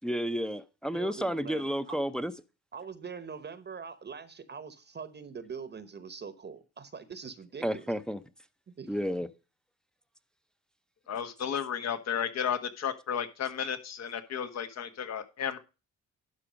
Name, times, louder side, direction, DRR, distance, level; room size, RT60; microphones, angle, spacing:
voice 1, 0.0-2.3 7.6-8.2 8.9-9.3, equal, ahead, 0.7 m, -31 dB
voice 2, 0.9-2.0 2.7-7.8 8.7-9.0, right 6 dB, 35° right, 1.0 m, -43 dB
voice 3, 11.1-15.6, left 8 dB, 60° left, 1.5 m, -33 dB
12.0 x 4.9 x 5.1 m
cardioid pair, 90°, 30 cm